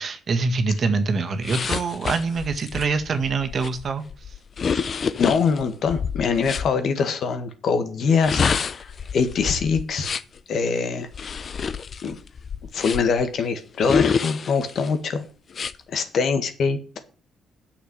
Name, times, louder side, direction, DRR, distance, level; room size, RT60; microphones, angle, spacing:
voice 1, 0.0-4.3, right 4 dB, 50° right, 1.7 m, -25 dB
sound 1, 1.4-6.7 8.1-10.4 11.1-13.2 13.8-14.9 15.5-15.7, left 6 dB, 45° left, 0.7 m, -27 dB
voice 2, 5.2-8.9 9.1-10.2 10.5-11.5 12.0-12.1 12.7-15.2 15.9-16.8, left 5 dB, 65° left, 1.7 m, -23 dB
8.5 x 6.8 x 8.0 m
cardioid pair, 90°, 0 cm